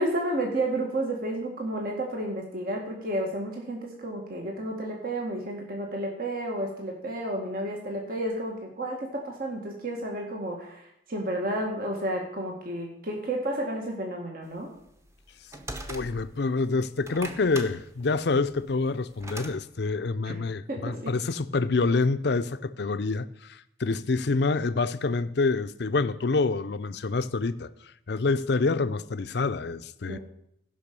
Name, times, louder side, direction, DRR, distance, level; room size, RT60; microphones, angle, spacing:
voice 1, 0.0-14.7 20.2-20.3 20.7-21.1 30.1-30.2, right 1 dB, 55° right, 1.9 m, -31 dB
sound 1, 14.8-16.5 16.9-19.6, right 1 dB, 15° right, 1.0 m, -40 dB
voice 2, 15.9-27.7 28.1-30.2, left 3 dB, 65° left, 0.6 m, -27 dB
15.0 x 5.7 x 6.9 m
head